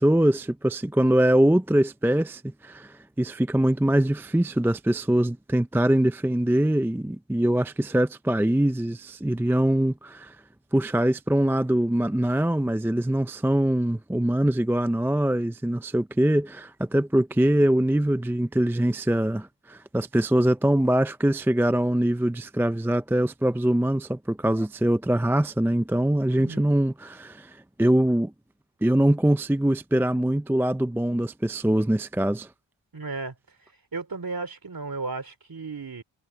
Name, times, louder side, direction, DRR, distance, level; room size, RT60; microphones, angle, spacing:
voice 1, 0.0-10.4 10.7-28.3 28.8-32.5, right 1 dB, 5° right, 0.5 m, -23 dB
voice 2, 26.3-26.7 32.9-33.3 33.9-36.0, right 3 dB, 45° right, 3.0 m, -34 dB
wide cardioid pair, 70°, 48 cm